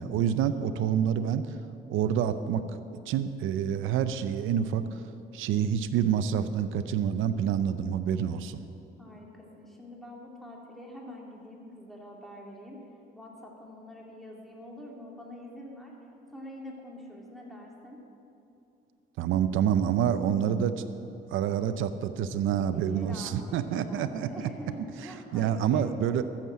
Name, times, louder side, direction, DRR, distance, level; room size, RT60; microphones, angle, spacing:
voice 1, 0.0-1.5 1.9-2.8 3.1-5.0 5.3-8.6 19.2-20.7 21.3-24.3 25.3-26.2, right 9 dB, 90° right, 11 dB, 0.7 m, -27 dB
voice 2, 9.0-12.8 13.2-15.9 16.3-18.0 22.7-26.0, left 1 dB, ahead, -2 dB, 2.5 m, -45 dB
13.5 x 7.5 x 7.6 m, 2.7 s
cardioid pair, 90°, 20 cm